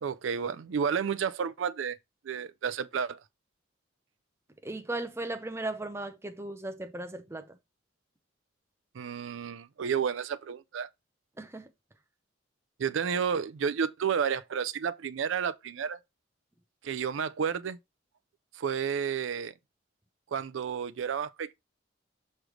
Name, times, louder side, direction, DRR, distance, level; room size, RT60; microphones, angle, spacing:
voice 1, 0.0-2.0 2.2-3.2 8.9-10.9 12.8-16.0 16.8-17.8 18.5-19.5 20.3-21.5, right 7 dB, 75° right, 0.4 m, -31 dB
voice 2, 4.6-7.6 11.4-11.7, right 2 dB, 15° right, 0.6 m, -37 dB
6.2 x 3.2 x 5.0 m
head